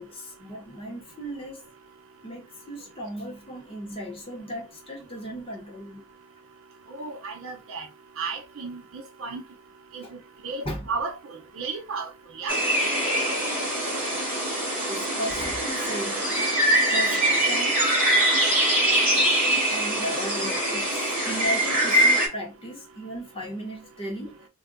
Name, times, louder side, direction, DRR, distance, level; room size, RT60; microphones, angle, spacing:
voice 1, 0.0-1.6 2.2-6.0 10.0-10.1 10.6-10.9 14.9-16.2 16.9-17.8 19.6-20.9 21.2-24.5, equal, 25° left, 0.9 m, -36 dB
voice 2, 6.9-7.9 8.2-9.4 9.9-12.6, right 4 dB, 65° right, 0.7 m, -34 dB
sound 1, 12.5-22.3, right 1 dB, 10° right, 1.1 m, -23 dB
2.3 x 2.2 x 3.8 m
head